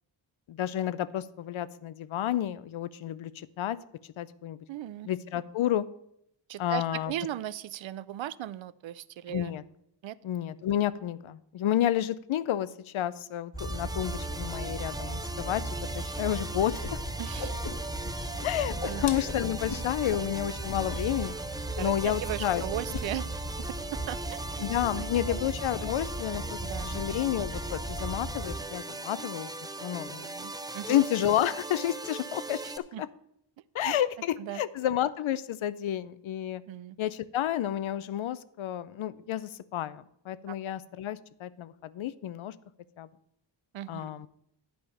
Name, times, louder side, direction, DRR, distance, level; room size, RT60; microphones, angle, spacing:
voice 1, 0.5-3.8 4.2-4.6 5.0-5.9 6.6-7.1 9.3-9.6 10.2-15.6 15.9-16.8 18.4-21.4 21.8-22.6 24.6-29.5 29.8-30.3 30.9-32.7 33.7-36.6 37.0-42.5 43.0-43.1 43.9-44.3, left 11 dB, 90° left, 17 dB, 0.6 m, -30 dB
voice 2, 4.7-5.1 6.5-9.5 10.0-10.2 17.2-17.5 18.9-19.1 21.8-23.3 23.9-25.4 26.6-27.0 30.1-30.9 32.6-33.0 33.8-33.9 34.4-34.6 36.7-37.0 40.5-40.6 43.7-44.2, right 12 dB, 75° right, 19 dB, 0.5 m, -38 dB
sound 1, 13.5-28.6, right 1 dB, 20° left, 1.8 m, -37 dB
sound 2, 13.6-32.8, right 2 dB, 10° right, 0.4 m, -39 dB
Whoosh swoosh swish, 16.8-16.9 17.2-18.1 18.4-20.3 20.7-21.0 21.2-21.4 21.7-22.3 22.5-23.1, left 5 dB, 60° left, 1.2 m, -39 dB
10.0 x 5.0 x 7.0 m, 0.76 s
wide cardioid pair, 135°, 46 cm